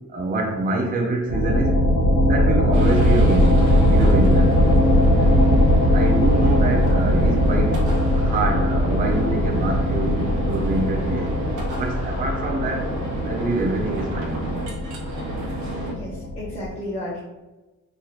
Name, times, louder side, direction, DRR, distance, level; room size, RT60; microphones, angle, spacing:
voice 1, 0.1-1.8 2.2-4.5 5.2-5.5 5.9-7.8 8.1-11.4 11.8-12.9 13.2-14.5, right 2 dB, 30° right, 1 dB, 0.5 m, -26 dB
sound 1, 1.3-16.7, equal, 85° left, 1.0 m, -20 dB
sound 2, 2.7-15.9, right 1 dB, 80° right, 0.8 m, -31 dB
voice 2, 15.9-17.2, left 1 dB, 20° left, -5 dB, 0.5 m, -32 dB
3.0 x 2.7 x 2.4 m, 1.1 s
cardioid pair, 145°, 30 cm